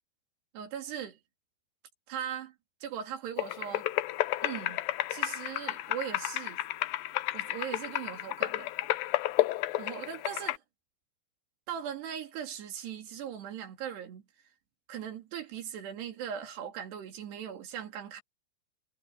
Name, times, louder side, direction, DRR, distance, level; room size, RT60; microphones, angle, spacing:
voice 1, 0.5-1.2 2.1-2.5 2.8-3.9 4.4-4.8 5.1-6.6 7.3-8.7 9.8-10.6 11.7-14.2 14.9-18.2, right 9 dB, 75° right, 4.6 m, -39 dB
sound 1, 3.4-10.6, left 16 dB, 80° left, 2.2 m, -32 dB
omnidirectional pair, 4.9 m